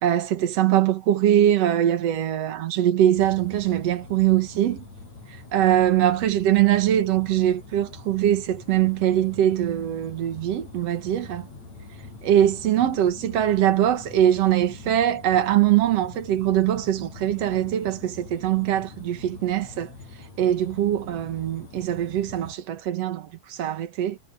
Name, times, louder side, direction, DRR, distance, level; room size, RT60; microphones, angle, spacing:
voice 1, 0.0-4.8 5.5-11.5 12.2-19.9 20.4-24.2, right 11 dB, 60° right, 1.7 m, -22 dB
sound 1, 3.1-22.5, left 3 dB, 40° left, 8.4 m, -44 dB
omnidirectional pair, 4.8 m